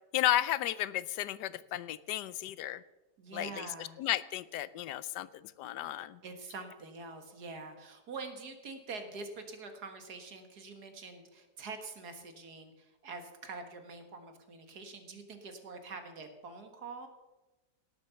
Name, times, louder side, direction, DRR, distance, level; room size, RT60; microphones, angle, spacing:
voice 1, 0.1-2.8 3.3-5.3 5.6-6.2, left 13 dB, 85° left, 17 dB, 1.2 m, -33 dB
voice 2, 3.2-4.0 6.2-17.1, right 4 dB, 70° right, 6 dB, 2.1 m, -45 dB
18.0 x 7.7 x 6.9 m, 1.1 s
omnidirectional pair, 1.8 m